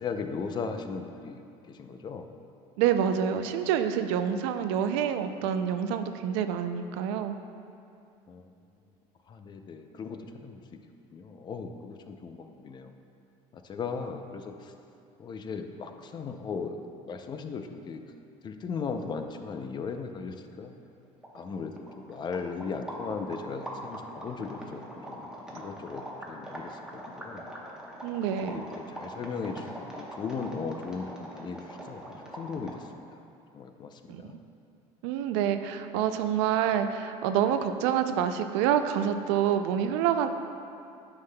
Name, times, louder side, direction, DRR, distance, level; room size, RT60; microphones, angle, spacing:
voice 1, 0.0-2.3 8.3-8.5 9.3-10.8 11.1-12.9 13.5-14.7 15.2-16.8 17.1-18.0 18.4-20.7 21.3-27.4 28.4-33.1 33.5-34.4, left 5 dB, 35° left, 6 dB, 0.4 m, -37 dB
voice 2, 2.8-7.3 28.0-28.6 34.1-34.3 35.0-40.3, right 9 dB, 85° right, 9 dB, 0.4 m, -27 dB
sound 1, 20.9-21.0 21.2-32.9, right 1 dB, 5° right, 0.9 m, -42 dB
9.6 x 5.6 x 2.2 m, 2.5 s
supercardioid pair, 110°, 14 cm